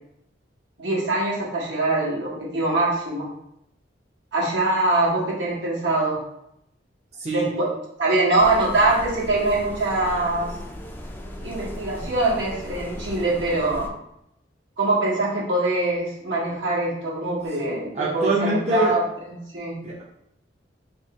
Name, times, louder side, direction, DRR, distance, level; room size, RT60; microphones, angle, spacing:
voice 1, 0.8-3.3 4.3-6.2 7.3-7.7 8.0-10.5 11.4-13.9 14.8-19.0 19.5-19.8, right 2 dB, 80° right, -5 dB, 1.3 m, -23 dB
voice 2, 7.1-7.5 17.6-17.7 17.9-19.0 19.8-20.0, right 2 dB, 35° right, -5 dB, 0.6 m, -24 dB
sound 1, 8.4-13.9, equal, 10° left, 0.4 m, -37 dB
3.0 x 2.9 x 4.2 m, 0.77 s
head